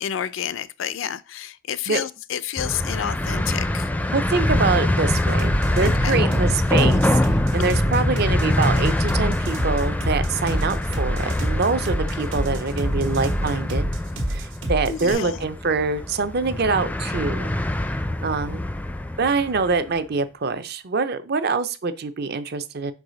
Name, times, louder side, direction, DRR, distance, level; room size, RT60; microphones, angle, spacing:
voice 1, 0.0-3.9 5.8-6.2 14.9-15.4, left 9 dB, 75° left, 0.4 m, -30 dB
sound 1, 2.6-19.8, left 1 dB, 10° left, 0.4 m, -24 dB
voice 2, 4.1-13.9 14.3-17.6 18.2-18.7 19.2-22.9, right 4 dB, 55° right, 0.6 m, -25 dB
sound 2, 5.2-15.1, right 1 dB, 85° right, 1.5 m, -27 dB
5.4 x 4.8 x 3.9 m
head